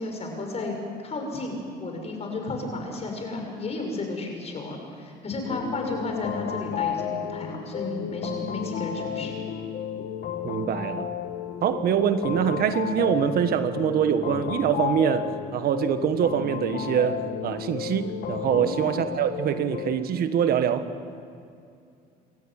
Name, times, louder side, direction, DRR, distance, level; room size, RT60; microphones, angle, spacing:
voice 1, 0.0-9.4 18.4-18.6, left 2 dB, 40° left, 2 dB, 6.4 m, -33 dB
sound 1, 5.5-20.0, left 9 dB, 65° left, 1.8 m, -32 dB
voice 2, 10.4-11.1 11.6-20.9, right 9 dB, 65° right, 9 dB, 1.5 m, -24 dB
28.0 x 14.0 x 9.3 m, 2.4 s
cardioid pair, 110°, 17 cm